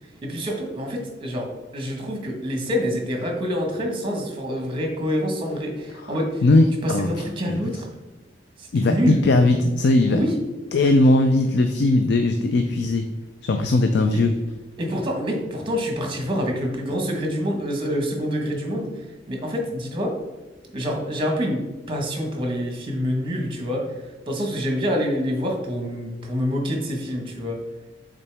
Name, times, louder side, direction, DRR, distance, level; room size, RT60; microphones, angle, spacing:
voice 1, 0.2-6.4 6.8-7.9 8.6-9.2 10.0-10.4 14.1-14.2 14.8-20.1 20.7-21.6 21.9-23.8 24.3-27.6, equal, 30° right, 2 dB, 1.2 m, -26 dB
voice 2, 6.4-7.1 7.5-7.6 8.7-10.2 10.7-13.1 13.4-14.3, left 2 dB, 65° left, 6 dB, 0.4 m, -19 dB
8.3 x 3.9 x 3.4 m, 1.1 s
head